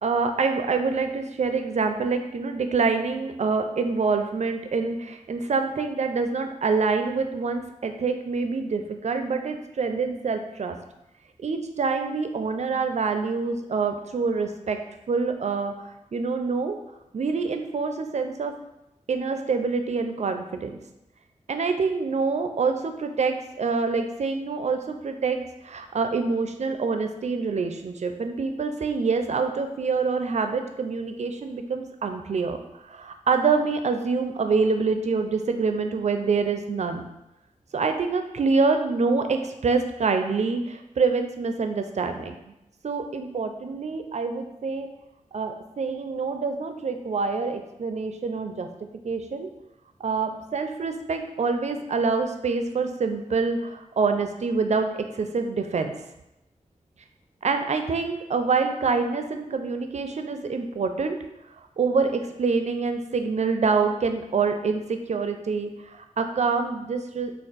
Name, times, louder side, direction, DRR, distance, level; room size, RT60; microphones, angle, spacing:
voice 1, 0.0-10.8 11.4-14.8 15.1-16.8 17.1-18.5 19.1-20.8 21.5-37.1 37.7-42.3 42.8-44.9 45.3-48.7 49.0-49.5 50.0-55.9 57.4-61.2 61.8-67.4, right 4 dB, 60° right, 6 dB, 0.4 m, -26 dB
3.4 x 2.4 x 3.9 m, 0.91 s
wide cardioid pair, 65°, 13 cm